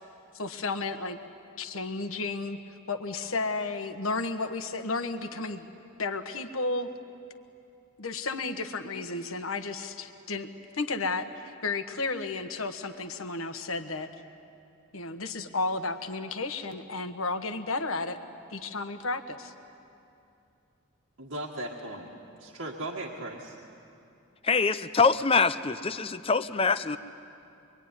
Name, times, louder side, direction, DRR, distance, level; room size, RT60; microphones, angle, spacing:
voice 1, 0.3-1.2 1.6-2.6 2.9-5.7 6.0-6.9 8.0-14.2 14.9-18.2 18.5-19.5, left 3 dB, 80° left, 7 dB, 1.5 m, -33 dB
voice 2, 21.2-22.1 22.4-23.6, right 1 dB, 75° right, -2 dB, 1.9 m, -37 dB
voice 3, 24.4-27.0, left 4 dB, 25° left, 12 dB, 0.6 m, -24 dB
26.0 x 23.5 x 9.8 m, 2.6 s
head